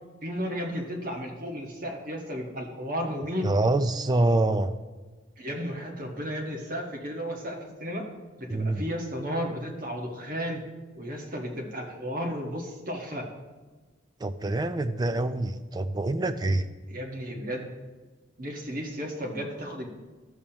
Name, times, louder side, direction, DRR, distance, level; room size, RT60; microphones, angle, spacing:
voice 1, 0.2-3.5 5.4-8.0 8.4-10.6 10.9-13.3 16.9-17.7 18.4-19.9, equal, 45° right, 0 dB, 1.4 m, -33 dB
voice 2, 3.4-4.7 8.5-8.8 14.2-16.7, right 2 dB, 20° right, 10 dB, 0.4 m, -25 dB
12.5 x 7.0 x 2.9 m, 1.3 s
head